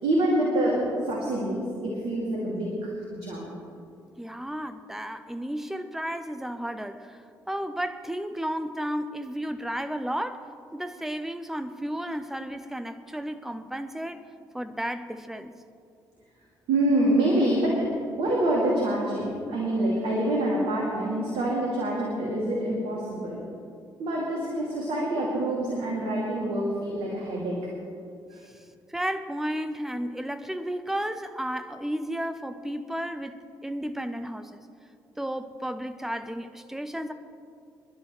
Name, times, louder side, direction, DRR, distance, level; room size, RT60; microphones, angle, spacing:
voice 1, 0.0-0.8 1.1-2.7 3.2-3.5 16.7-17.8 18.2-23.4 24.0-27.6 28.3-28.4, right 1 dB, 60° right, -4 dB, 2.4 m, -26 dB
voice 2, 4.2-7.2 7.5-10.4 10.7-14.2 14.5-15.5 28.9-33.3 33.6-34.6 35.2-37.1, equal, 5° right, 10 dB, 0.8 m, -33 dB
26.5 x 11.0 x 3.2 m, 2.5 s
figure-of-eight pair, 45°, 11 cm